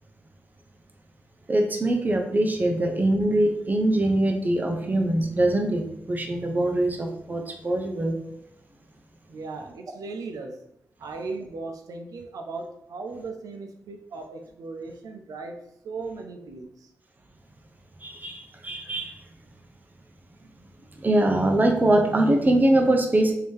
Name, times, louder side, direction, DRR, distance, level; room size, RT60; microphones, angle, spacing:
voice 1, 1.5-8.2 18.0-19.2 21.0-23.3, right 1 dB, 30° right, 3 dB, 0.7 m, -23 dB
voice 2, 9.3-10.6 11.0-16.9, right 3 dB, 80° right, 4 dB, 0.5 m, -37 dB
3.1 x 2.7 x 3.5 m, 0.78 s
cardioid pair, 55°, 6 cm